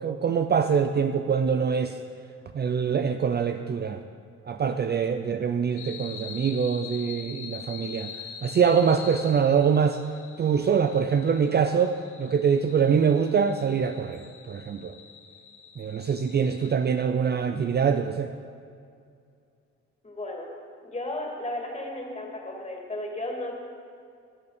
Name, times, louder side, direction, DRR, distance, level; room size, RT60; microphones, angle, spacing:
voice 1, 0.0-2.0 2.5-4.0 4.5-10.0 10.4-14.9 15.8-18.3, right 6 dB, 35° right, 8 dB, 0.5 m, -24 dB
sound 1, 5.8-16.8, left 7 dB, 80° left, 1.5 m, -44 dB
voice 2, 20.0-20.5 20.8-23.5, left 1 dB, 20° left, 0 dB, 2.5 m, -34 dB
13.0 x 8.5 x 5.1 m, 2.3 s
cardioid pair, 90°, 30 cm